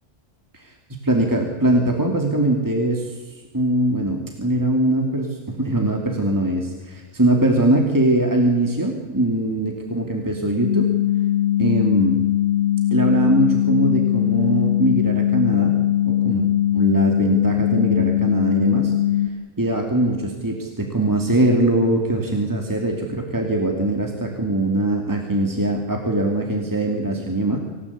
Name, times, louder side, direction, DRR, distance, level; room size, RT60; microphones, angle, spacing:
voice 1, 1.0-3.2 3.5-10.9 11.6-12.3 12.9-15.8 16.0-16.5 16.7-18.9 19.6-27.6, right 1 dB, 15° right, 2 dB, 2.6 m, -21 dB
sound 1, 10.6-19.3, left 12 dB, 60° left, 2.2 m, -20 dB
26.5 x 17.0 x 8.4 m, 1.4 s
omnidirectional pair, 1.3 m